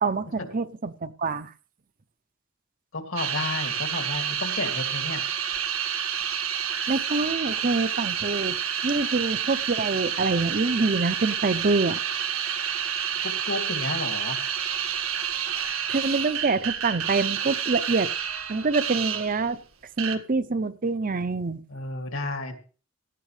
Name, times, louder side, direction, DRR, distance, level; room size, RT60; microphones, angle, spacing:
voice 1, 0.0-1.5 6.9-8.6 8.8-12.0 15.9-18.1 18.5-19.6 20.0-21.6, right 3 dB, 40° right, 12 dB, 0.7 m, -26 dB
voice 2, 2.9-5.3 13.2-14.4 21.7-22.5, left 2 dB, 70° left, 5 dB, 2.6 m, -32 dB
sound 1, 3.2-19.5 20.0-20.2, right 8 dB, 90° right, 1.7 m, -29 dB
17.5 x 12.5 x 3.3 m, 0.38 s
head